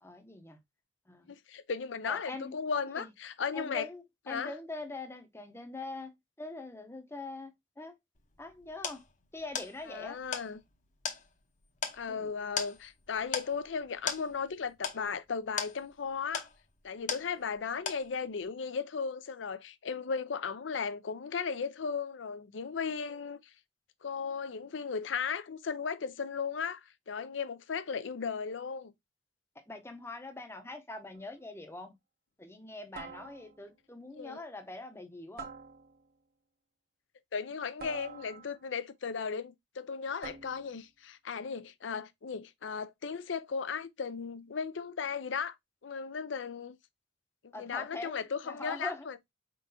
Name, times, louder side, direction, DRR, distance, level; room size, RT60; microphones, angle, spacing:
voice 1, 0.0-0.6 1.1-1.3 2.0-2.5 3.0-3.1 3.5-7.9 8.4-9.0 9.3-10.2 12.1-12.3 29.7-31.9 32.4-35.5 47.5-49.1, left 2 dB, 15° left, 0.7 m, -43 dB
voice 2, 1.3-3.8 4.3-4.5 9.9-10.6 11.9-16.5 16.8-23.5 24.0-28.9 34.1-34.4 37.3-45.6 45.8-46.8 47.4-49.2, left 6 dB, 75° left, 0.5 m, -36 dB
sound 1, 8.2-17.6 17.9-18.4, left 6 dB, 40° left, 0.8 m, -39 dB
sound 2, 31.1-31.5 32.9-33.7 35.4-36.2 37.8-38.7 40.2-40.8, right 5 dB, 55° right, 0.9 m, -47 dB
4.7 x 3.8 x 2.7 m
head